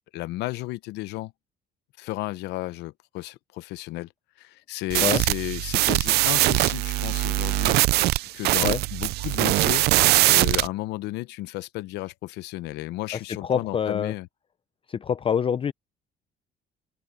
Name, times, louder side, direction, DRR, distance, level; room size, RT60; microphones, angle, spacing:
voice 1, 0.1-1.3 2.0-4.1 4.4-14.3, left 18 dB, 90° left, 0.8 m, -33 dB
sound 1, 4.9-10.7, right 18 dB, 75° right, 0.4 m, -22 dB
voice 2, 13.4-14.1 14.9-15.7, left 7 dB, 30° left, 0.5 m, -25 dB
open air
cardioid pair, 110°, 17 cm